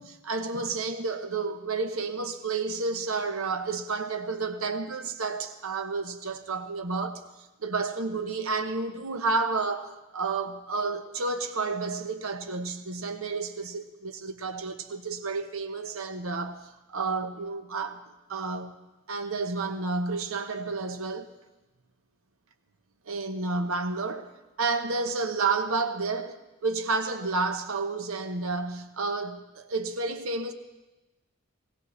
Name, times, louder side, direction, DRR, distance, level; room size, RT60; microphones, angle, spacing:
voice 1, 0.0-7.2 7.6-18.0 18.3-18.8 19.1-21.3 23.1-24.3 24.6-30.5, right 3 dB, 80° right, 1.0 m, -31 dB
19.5 x 17.0 x 3.2 m
head